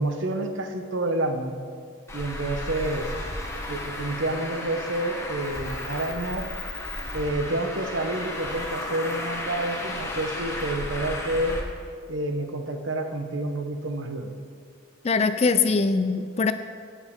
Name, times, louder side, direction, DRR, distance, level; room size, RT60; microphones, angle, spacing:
voice 1, 0.0-1.6 2.1-3.1 3.7-6.5 7.1-11.6 12.1-14.3, right 1 dB, 70° right, 6 dB, 1.0 m, -29 dB
Traffic noise roadway noise, 2.1-11.6, left 1 dB, 15° left, 1.0 m, -34 dB
voice 2, 15.0-16.5, left 4 dB, 30° left, 10 dB, 0.4 m, -22 dB
17.0 x 7.3 x 3.6 m, 2.1 s
head